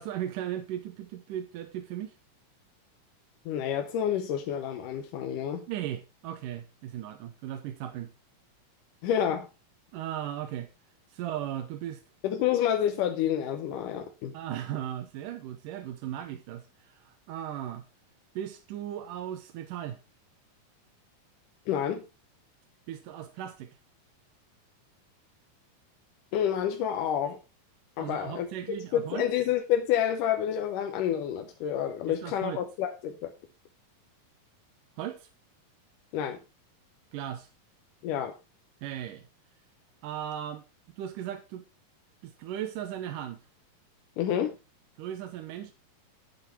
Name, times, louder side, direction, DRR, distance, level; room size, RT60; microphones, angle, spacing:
voice 1, 0.0-2.1 5.7-8.1 9.9-10.7 11.1-12.0 14.3-17.9 18.4-20.0 22.9-23.7 28.0-29.2 32.1-32.6 35.0-35.3 37.1-37.5 38.8-39.3 40.0-40.6 41.0-41.6 42.2-43.4 45.0-45.7, right 11 dB, 75° right, 2.3 m, -37 dB
voice 2, 3.5-5.6 9.0-9.5 12.2-14.3 21.7-22.0 26.3-27.4 28.0-33.3 36.1-36.4 38.0-38.3 44.2-44.6, left 10 dB, 75° left, 2.4 m, -29 dB
10.5 x 8.1 x 4.3 m
omnidirectional pair, 4.1 m